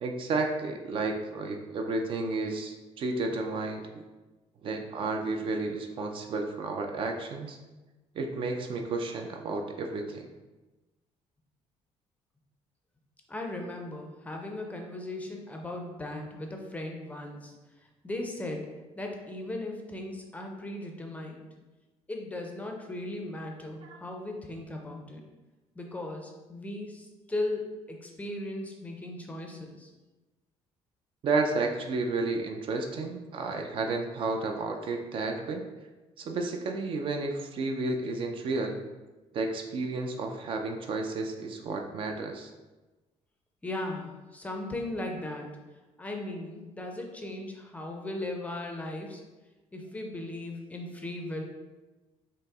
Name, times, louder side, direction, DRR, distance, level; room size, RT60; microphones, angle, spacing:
voice 1, 0.0-4.0 4.6-7.6 8.2-10.3 23.8-24.0 31.2-35.6 36.2-38.7 39.3-42.5, right 3 dB, 50° right, 4 dB, 0.4 m, -32 dB
voice 2, 13.3-17.5 18.0-18.7 19.0-21.5 22.1-25.2 25.8-29.9 43.6-45.5 46.0-49.2 49.7-51.4, left 1 dB, 10° left, 2 dB, 0.5 m, -37 dB
5.4 x 2.0 x 3.5 m, 1.2 s
cardioid pair, 145°, 12 cm